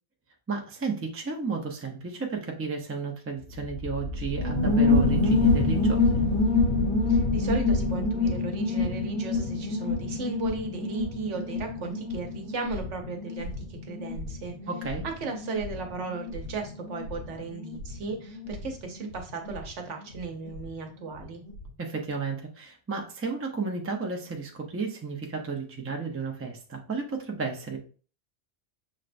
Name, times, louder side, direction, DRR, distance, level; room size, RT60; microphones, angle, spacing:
voice 1, 0.5-6.2 14.7-15.0 21.8-27.8, right 4 dB, 20° right, 2 dB, 0.4 m, -33 dB
sound 1, 3.3-8.2, left 1 dB, 60° left, 1.0 m, -33 dB
sound 2, 4.4-20.7 20.9-21.0 21.2-21.7, left 3 dB, 75° left, 1.5 m, -27 dB
voice 2, 7.1-14.5 15.0-21.4, right 4 dB, 85° right, 3 dB, 1.1 m, -36 dB
6.4 x 2.2 x 2.5 m, 0.40 s
omnidirectional pair, 1.2 m